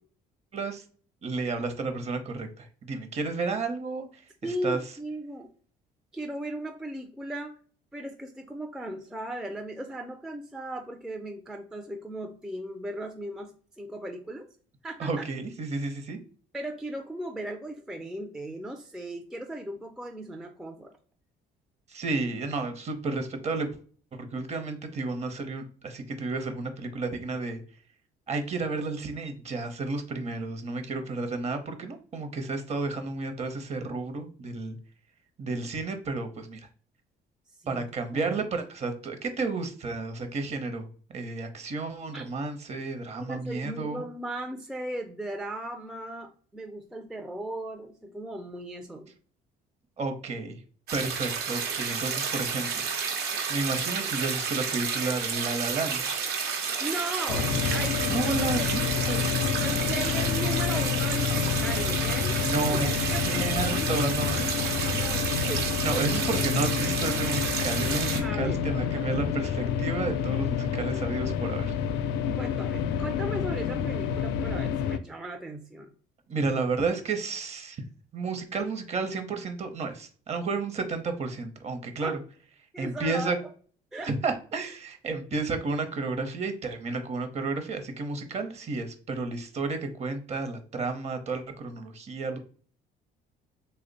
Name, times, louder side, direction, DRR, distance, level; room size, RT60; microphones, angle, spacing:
voice 1, 0.5-0.8 1.2-4.2 4.6-4.8 15.0-16.2 21.9-23.7 24.1-27.6 28.3-34.8 35.4-36.6 37.7-44.0 50.0-50.6 50.9-52.9 53.5-56.0 58.1-59.3 62.4-64.5 65.8-71.7 76.3-77.8 78.1-82.1 82.8-83.4 84.0-92.4, right 3 dB, 40° right, 7 dB, 0.7 m, -32 dB
voice 2, 4.4-5.5 6.1-7.5 7.9-14.5 14.8-15.2 16.5-20.9 37.6-37.9 38.1-38.4 42.1-42.2 43.2-49.1 56.8-58.1 59.6-62.4 62.7-62.8 63.1-63.5 63.8-64.0 64.6-65.7 68.2-68.6 72.4-75.9 76.4-76.6 82.0-82.1 82.7-83.4 83.9-84.1, right 1 dB, 5° right, 3 dB, 0.4 m, -37 dB
sound 1, 50.9-68.2, right 6 dB, 70° right, 0.8 m, -31 dB
sound 2, 57.3-75.0, left 8 dB, 90° left, 0.4 m, -29 dB
3.1 x 2.1 x 3.9 m, 0.43 s
cardioid pair, 110°, 17 cm